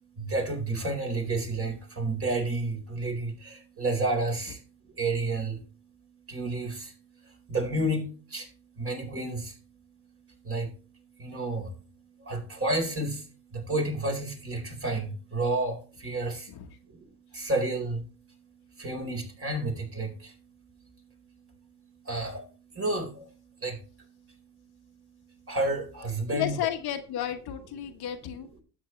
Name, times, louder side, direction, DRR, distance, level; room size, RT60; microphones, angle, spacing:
voice 1, 0.2-4.6 4.9-5.6 6.3-6.9 7.2-8.5 8.8-9.6 10.4-10.8 11.2-11.8 12.2-16.5 16.9-18.4 18.7-20.4 22.0-24.1 25.5-26.5, right 2 dB, 30° right, 3 dB, 4.3 m, -31 dB
voice 2, 26.3-28.5, left 11 dB, 50° left, 5 dB, 1.3 m, -32 dB
12.0 x 8.1 x 3.2 m, 0.37 s
supercardioid pair, 95°, 47 cm